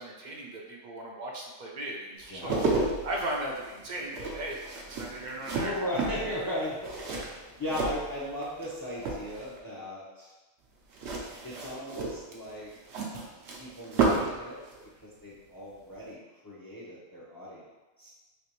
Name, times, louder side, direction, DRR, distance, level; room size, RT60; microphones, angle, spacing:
voice 1, 0.0-2.5 3.0-4.6 5.0-5.7, right 1 dB, 55° right, -1 dB, 0.6 m, -36 dB
sound 1, 2.2-8.7 9.0-9.6 10.9-14.4 14.7-14.8, right 3 dB, 80° right, 0.9 m, -32 dB
voice 2, 2.3-2.7 5.6-6.9 7.3-10.3 11.4-12.7 13.6-14.6 15.0-17.6 18.0-18.1, left 1 dB, 25° left, -7 dB, 0.5 m, -37 dB
3.2 x 2.9 x 2.9 m, 1.2 s
omnidirectional pair, 1.1 m